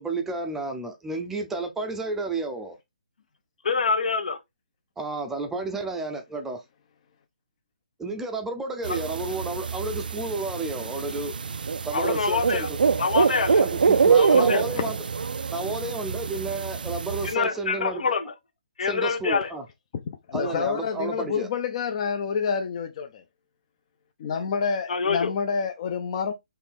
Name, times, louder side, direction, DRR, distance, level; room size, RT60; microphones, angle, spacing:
voice 1, 0.0-2.8 5.0-6.6 8.0-11.4 11.8-12.8 13.6-15.0 15.5-18.0 18.8-19.6 20.3-21.5, right 3 dB, 5° right, 0.6 m, -31 dB
voice 2, 3.6-4.4 8.9-9.0 11.9-12.7 13.0-13.6 14.2-14.6 17.2-18.3 18.8-19.5 20.4-20.5 24.9-25.3, left 5 dB, 70° left, 1.1 m, -26 dB
sound 1, 8.8-17.3, right 5 dB, 80° right, 0.4 m, -25 dB
voice 3, 20.3-23.2 24.2-26.3, left 6 dB, 40° left, 0.6 m, -28 dB
4.5 x 3.2 x 3.6 m
hypercardioid pair, 155°, 5 cm